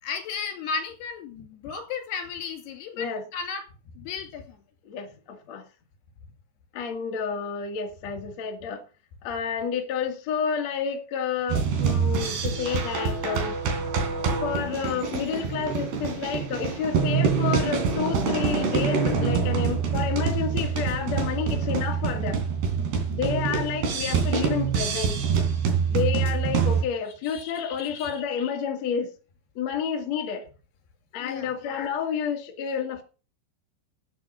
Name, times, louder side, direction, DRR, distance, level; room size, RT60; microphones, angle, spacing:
voice 1, 0.0-3.6 3.9-4.6 7.0-7.1 22.9-23.2 24.0-24.1 27.2-28.2 31.2-31.6, left 5 dB, 70° left, 5 dB, 4.7 m, -35 dB
voice 2, 2.9-3.2 4.8-5.7 6.7-8.8 9.2-13.6 14.4-22.4 23.1-25.2 25.9-29.1 29.6-30.5 31.1-33.0, left 7 dB, 50° left, 3 dB, 2.4 m, -30 dB
sound 1, 11.5-26.8, right 6 dB, 70° right, 5.0 m, -25 dB
13.0 x 8.9 x 6.2 m, 0.36 s
omnidirectional pair, 5.0 m